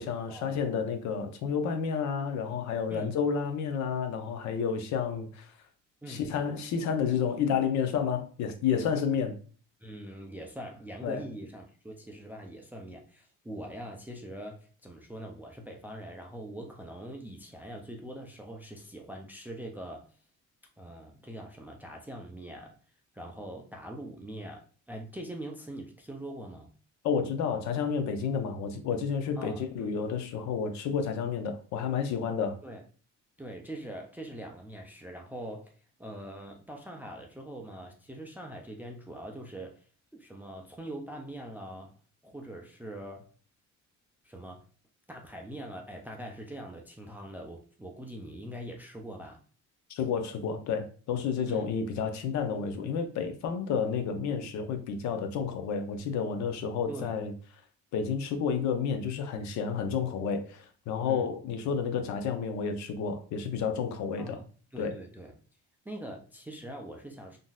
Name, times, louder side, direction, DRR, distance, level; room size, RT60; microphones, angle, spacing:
voice 1, 0.0-5.5 6.1-9.4 11.0-11.2 27.0-32.6 49.9-57.3 57.9-64.4 64.8-64.9, left 6 dB, 60° left, 0.6 m, -30 dB
voice 2, 9.8-20.1 20.8-22.8 23.1-26.7 29.4-30.1 32.6-32.8 33.4-35.7 36.0-41.9 42.2-43.3 44.2-44.6 45.1-49.4 51.5-51.7 56.9-57.2 61.0-61.3 64.2-64.4 64.7-65.3 65.8-67.4, right 1 dB, 5° right, 0.3 m, -43 dB
3.7 x 2.6 x 2.3 m
cardioid pair, 130°, 31 cm